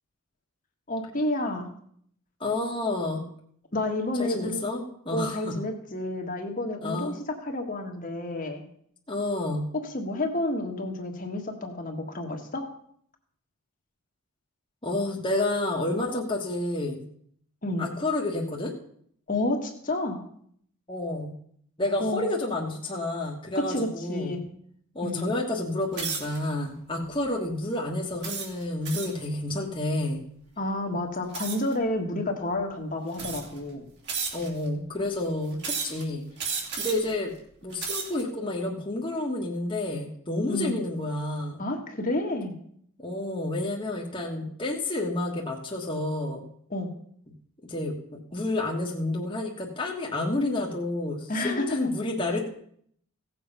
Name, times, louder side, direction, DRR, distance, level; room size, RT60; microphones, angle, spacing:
voice 1, 0.9-1.7 3.7-4.7 5.1-7.1 7.4-8.6 9.8-12.7 17.6-17.9 19.3-20.2 22.0-22.3 23.5-24.4 25.0-25.3 30.6-33.9 40.5-40.8 41.6-42.6 46.7-46.9 51.3-51.9, left 1 dB, 40° left, 2 dB, 1.6 m, -30 dB
voice 2, 2.4-3.3 4.2-5.6 6.8-7.1 9.1-9.7 14.8-17.0 17.8-18.7 20.9-21.3 21.8-24.4 24.9-30.2 34.3-37.3 37.6-41.6 43.0-46.4 47.6-52.4, left 2 dB, 20° left, -1 dB, 1.5 m, -30 dB
sound 1, 25.9-26.4 27.0-27.3 28.2-29.2 31.3-31.7 32.6-32.7 33.1-33.6 34.1-34.7 35.6-36.0 36.4-37.1 37.6-38.2, right 6 dB, 50° right, 2.7 m, -33 dB
17.0 x 7.2 x 5.6 m, 0.65 s
head